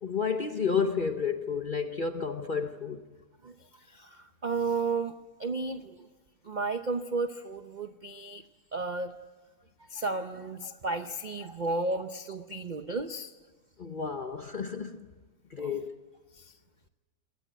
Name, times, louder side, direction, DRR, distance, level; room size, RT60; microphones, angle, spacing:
voice 1, 0.0-3.0 10.7-10.8 11.4-11.7 13.8-15.1 15.5-16.0, left 5 dB, 40° left, 0.8 m, -31 dB
voice 2, 3.4-5.1 5.4-6.1 6.4-8.4 8.7-9.1 9.8-13.3 15.6-15.7 16.3-16.5, right 3 dB, 50° right, 0.5 m, -33 dB
23.0 x 18.5 x 9.2 m
omnidirectional pair, 1.9 m